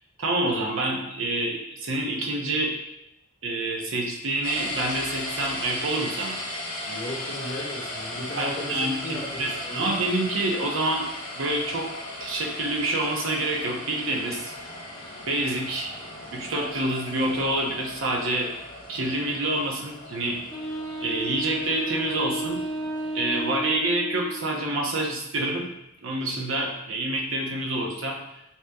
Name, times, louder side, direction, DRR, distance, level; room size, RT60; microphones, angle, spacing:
voice 1, 0.2-2.8 3.4-6.4 8.4-11.1 11.4-11.9 12.2-14.5 15.3-15.9 16.3-18.5 18.9-20.4 21.0-22.6 23.1-25.7 26.0-28.2, right 2 dB, 70° right, 0 dB, 0.9 m, -27 dB
sound 1, 4.4-23.5, left 1 dB, 45° left, 1.4 m, -37 dB
voice 2, 6.9-10.1, left 1 dB, 65° left, -6 dB, 1.6 m, -36 dB
Wind instrument woodwind instrument, 20.5-24.6, right 1 dB, 20° left, 1.3 m, -32 dB
7.1 x 3.1 x 2.3 m, 0.83 s
head